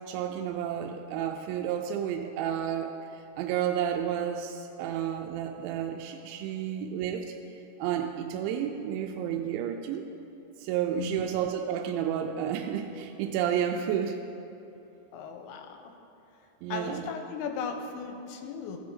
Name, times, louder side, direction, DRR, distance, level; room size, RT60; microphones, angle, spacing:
voice 1, 0.1-2.9 3.4-7.3 7.8-10.0 10.6-14.2 16.6-17.1, right 9 dB, 85° right, 3 dB, 2.9 m, -31 dB
voice 2, 15.1-15.9 16.7-18.8, left 6 dB, 85° left, 4 dB, 2.8 m, -36 dB
15.5 x 7.7 x 3.7 m, 2.8 s
omnidirectional pair, 5.3 m